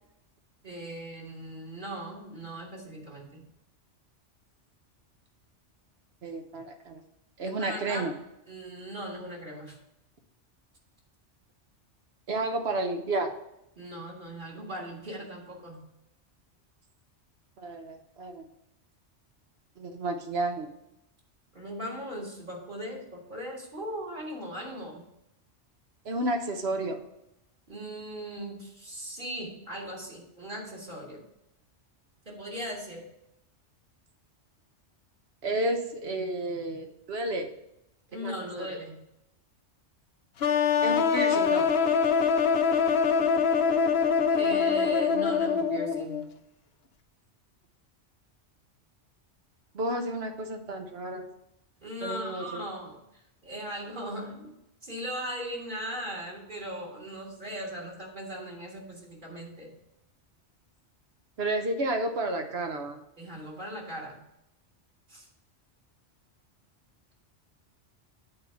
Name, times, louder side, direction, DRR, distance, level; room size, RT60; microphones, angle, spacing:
voice 1, 0.6-3.4 7.4-8.1 8.5-9.8 13.8-15.8 21.5-25.0 27.7-31.2 32.3-33.0 38.1-39.0 44.3-46.2 51.8-53.0 53.4-54.5 54.8-59.8 63.2-64.2 65.1-65.3, equal, 45° right, -3 dB, 1.9 m, -38 dB
voice 2, 6.2-7.0 7.4-8.1 12.3-13.3 17.6-18.4 19.8-20.7 26.0-27.0 35.4-37.5 38.2-38.8 40.8-41.7 49.7-51.3 52.0-52.6 61.4-63.0, right 2 dB, 60° right, 5 dB, 1.1 m, -31 dB
sound 1, 40.4-46.2, left 6 dB, 65° left, 0.8 m, -24 dB
8.5 x 4.2 x 5.7 m, 0.84 s
omnidirectional pair, 1.2 m